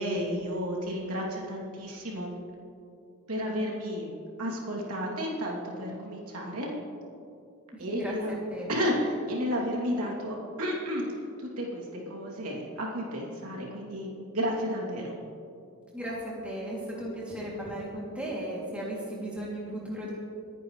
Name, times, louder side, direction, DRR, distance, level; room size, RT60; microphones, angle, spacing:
voice 1, 0.0-2.3 3.3-4.1 4.4-6.7 7.8-8.3 8.7-11.0 11.4-15.2, equal, 85° right, -2 dB, 2.9 m, -32 dB
voice 2, 7.9-8.7 15.9-20.1, right 1 dB, 5° right, -6 dB, 2.8 m, -36 dB
25.5 x 9.9 x 3.3 m, 2.6 s
head